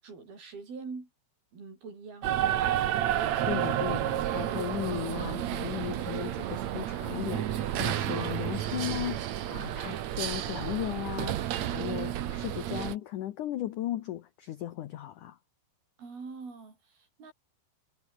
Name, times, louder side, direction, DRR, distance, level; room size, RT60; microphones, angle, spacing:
voice 1, 0.0-1.1 1.5-2.3 8.0-8.4 16.0-17.3, right 4 dB, 55° right, 8.7 m, -43 dB
sound 1, 2.2-13.0, right 11 dB, 80° right, 1.5 m, -31 dB
voice 2, 3.2-15.4, left 13 dB, 80° left, 1.8 m, -36 dB
omnidirectional pair, 5.2 m